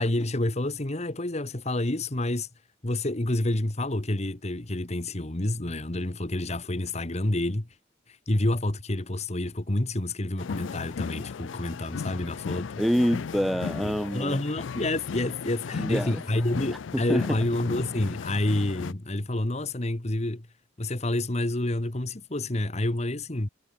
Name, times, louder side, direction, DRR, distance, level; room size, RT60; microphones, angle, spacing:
voice 1, 0.0-2.5 2.8-7.7 8.3-12.7 13.8-20.5 20.8-23.5, left 1 dB, 35° left, 1.5 m, -28 dB
sound 1, 10.4-18.9, left 5 dB, 90° left, 0.4 m, -36 dB
voice 2, 12.8-14.4 15.7-16.2 16.9-17.4, equal, ahead, 0.4 m, -26 dB
head